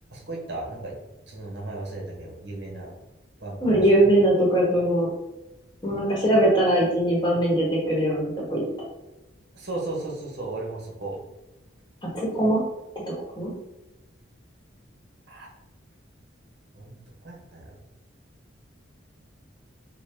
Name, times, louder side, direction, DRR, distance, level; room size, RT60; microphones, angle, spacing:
voice 1, 0.1-1.0 1.3-2.9 3.4-3.8 9.5-11.2 15.3-15.5 16.7-17.0 17.2-17.8, right 2 dB, 60° right, -2 dB, 1.1 m, -35 dB
voice 2, 3.6-5.1 5.8-8.6 12.1-12.6 13.4-13.5, right 1 dB, 20° left, -4 dB, 1.2 m, -21 dB
5.9 x 2.2 x 3.6 m, 0.99 s
head